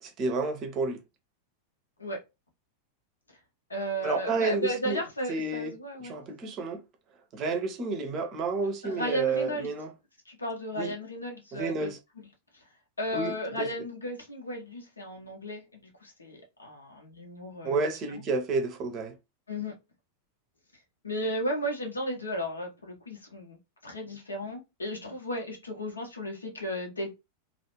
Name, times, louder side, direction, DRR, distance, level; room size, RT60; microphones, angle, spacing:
voice 1, 0.0-1.0 4.0-5.0 5.3-5.7 6.0-6.8 7.3-9.9 10.7-10.9 11.5-12.0 13.1-13.7 17.6-19.2, right 3 dB, 35° right, 0.6 m, -30 dB
voice 2, 3.7-6.1 8.8-9.7 10.3-11.9 13.0-17.8 18.1-18.2 19.5-19.8 21.0-23.6 23.8-27.2, equal, 75° left, 0.7 m, -34 dB
2.4 x 2.0 x 2.9 m
figure-of-eight pair, 90°, 0 cm